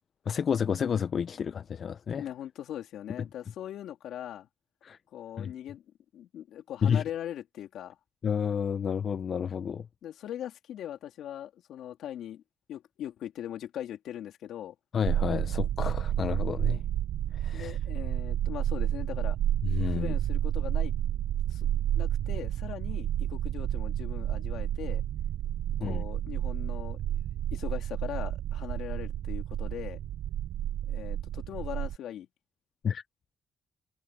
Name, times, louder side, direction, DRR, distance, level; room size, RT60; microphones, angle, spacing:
voice 1, 0.3-2.3 4.8-5.0 5.4-5.5 6.8-7.0 8.2-9.9 14.9-16.8 17.3-17.8 19.6-20.1 25.8-26.0 32.8-33.0, left 7 dB, 50° left, 0.6 m, -30 dB
voice 2, 2.1-4.5 5.1-5.8 6.1-8.0 10.0-12.4 12.7-14.7 17.5-19.4 19.8-20.9 21.5-21.7 21.9-25.0 25.8-27.0 27.5-30.0 30.9-32.3, left 11 dB, 80° left, 3.1 m, -40 dB
sound 1, 15.0-32.0, right 11 dB, 75° right, 0.5 m, -31 dB
cardioid pair, 90°, 0 cm